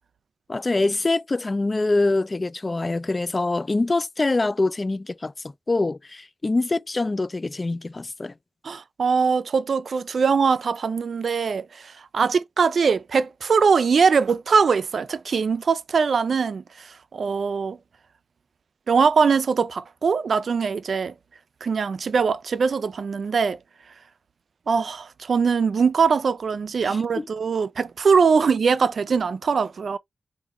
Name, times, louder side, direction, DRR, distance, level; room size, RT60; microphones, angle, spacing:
voice 1, 0.5-5.3 5.7-8.3 26.8-27.3, left 2 dB, 40° left, 0.3 m, -24 dB
voice 2, 8.6-17.8 18.9-21.1 21.6-23.6 24.7-30.0, right 5 dB, 80° right, 0.3 m, -22 dB
4.8 x 2.6 x 2.9 m
cardioid pair, 60°, 0 cm